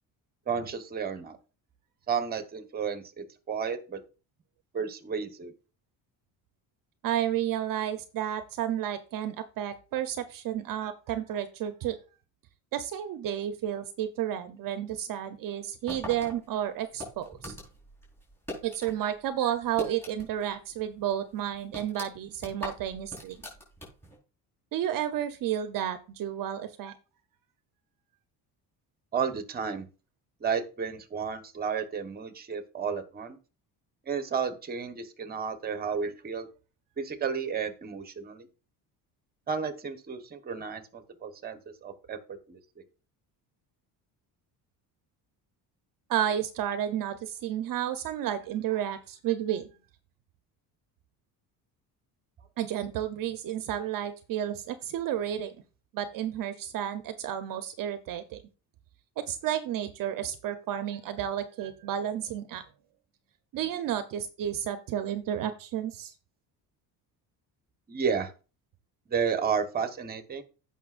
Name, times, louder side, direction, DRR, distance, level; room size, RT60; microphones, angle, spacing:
voice 1, 0.5-1.4 2.1-4.0 4.7-5.5 29.1-29.9 30.4-33.4 34.1-36.5 37.0-38.5 39.5-42.2 42.5-42.6 67.9-68.3 69.1-70.4, right 6 dB, 25° right, 9 dB, 1.1 m, -32 dB
voice 2, 7.0-12.0 12.7-17.5 18.6-23.4 24.7-26.9 46.1-49.6 52.6-55.5 55.9-58.4 59.2-62.6 63.5-66.1, right 10 dB, 55° right, 10 dB, 0.8 m, -31 dB
sound 1, 15.9-19.0 19.3-20.5 20.8-20.9 21.3-24.2, left 1 dB, 5° left, 4.5 m, -41 dB
15.5 x 5.8 x 2.5 m, 0.34 s
cardioid pair, 170°, 40 cm